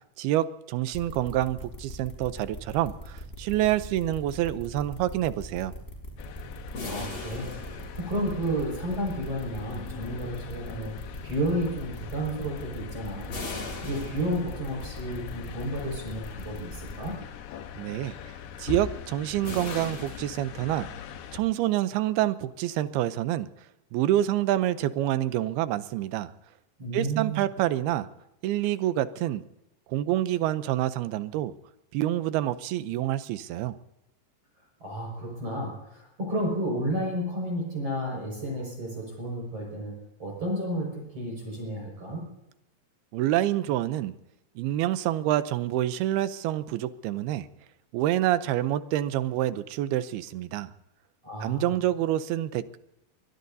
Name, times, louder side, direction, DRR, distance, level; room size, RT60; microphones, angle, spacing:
voice 1, 0.2-5.7 17.8-18.1 18.6-20.9 21.3-23.5 23.9-26.3 26.9-28.1 28.4-29.4 29.9-31.5 31.9-33.8 43.1-44.1 44.6-47.5 47.9-50.7 51.4-52.8, right 13 dB, 80° right, 13 dB, 2.6 m, -27 dB
sound 1, 0.9-17.1, left 1 dB, 15° left, 5.2 m, -41 dB
sound 2, 6.2-21.4, left 7 dB, 80° left, 3.1 m, -42 dB
sound 3, 6.7-8.6 13.3-14.9 19.4-21.1, left 3 dB, 35° left, 2.9 m, -39 dB
voice 2, 6.8-10.9 11.2-13.3 13.8-17.2 26.8-27.4 34.8-39.9 40.2-42.2 51.2-51.7, right 1 dB, 35° right, -1 dB, 6.5 m, -32 dB
24.0 x 20.5 x 2.7 m, 0.87 s
omnidirectional pair, 4.7 m